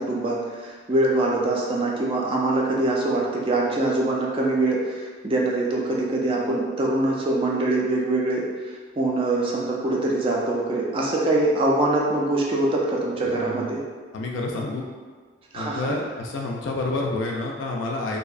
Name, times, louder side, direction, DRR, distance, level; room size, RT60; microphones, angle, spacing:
voice 1, 0.0-8.5 9.0-13.8 15.5-15.9, right 2 dB, 30° right, -3 dB, 0.3 m, -23 dB
voice 2, 13.3-13.8 14.1-14.9 15.5-18.2, left 2 dB, 75° left, 0 dB, 0.3 m, -29 dB
2.6 x 2.0 x 2.4 m, 1.5 s
head